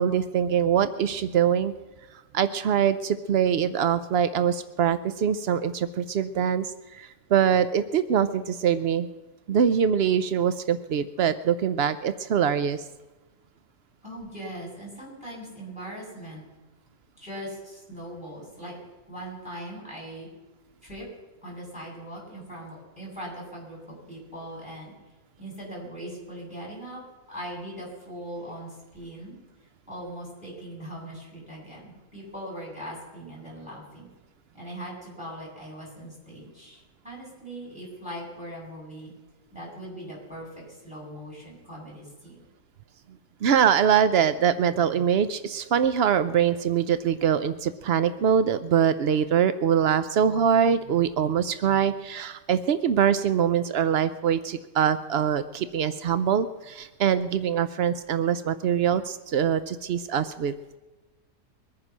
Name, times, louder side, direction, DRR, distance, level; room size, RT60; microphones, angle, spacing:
voice 1, 0.0-1.7 2.3-9.1 9.5-12.8 43.4-60.5, right 8 dB, 80° right, 13 dB, 0.5 m, -23 dB
voice 2, 14.0-16.4 17.2-18.7 19.1-20.3 20.8-21.0 21.4-24.9 25.4-27.0 27.3-29.4 29.9-34.1 34.5-39.1 39.5-42.4, right 1 dB, 5° right, -4 dB, 7.6 m, -40 dB
22.0 x 9.7 x 6.1 m, 1.1 s
omnidirectional pair, 1.8 m